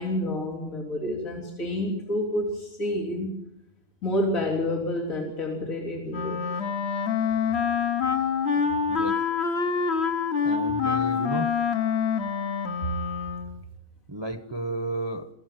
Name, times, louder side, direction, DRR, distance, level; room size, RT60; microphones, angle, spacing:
voice 1, 0.0-3.3 4.0-6.4, left 1 dB, 85° left, -3 dB, 3.9 m, -29 dB
Wind instrument woodwind instrument, 6.1-13.6, left 6 dB, 55° left, 1.3 m, -26 dB
voice 2, 8.6-9.2 10.4-11.5 14.1-15.3, right 2 dB, 20° right, 10 dB, 1.0 m, -33 dB
22.5 x 15.0 x 9.3 m, 0.90 s
omnidirectional pair, 1.4 m